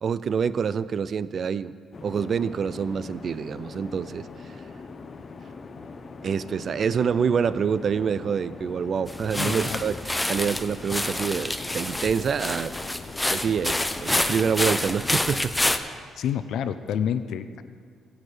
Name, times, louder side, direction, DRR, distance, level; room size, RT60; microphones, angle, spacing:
voice 1, 0.0-1.7 2.0-4.3 6.2-10.0 10.2-12.7 13.3-15.5, right 6 dB, 50° right, 16 dB, 0.3 m, -26 dB
sound 1, 1.9-15.4, left 4 dB, 40° left, 0.7 m, -42 dB
sound 2, 9.1-15.8, left 1 dB, 10° left, 0.6 m, -28 dB
voice 2, 9.4-9.9 16.2-17.6, left 8 dB, 75° left, 12 dB, 0.5 m, -29 dB
16.0 x 8.8 x 3.3 m, 2.2 s
cardioid pair, 90°, 0 cm